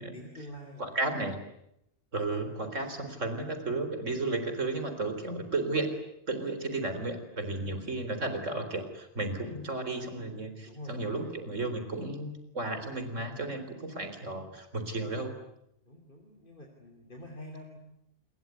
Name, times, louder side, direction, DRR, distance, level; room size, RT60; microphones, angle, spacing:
voice 1, 0.0-1.0 10.6-10.9 11.2-11.3 15.8-17.8, left 1 dB, 40° left, 3 dB, 3.6 m, -47 dB
voice 2, 0.8-1.4 2.1-5.9 6.3-15.4, right 2 dB, 80° right, 9 dB, 4.4 m, -33 dB
27.0 x 22.5 x 9.5 m, 0.80 s
omnidirectional pair, 1.3 m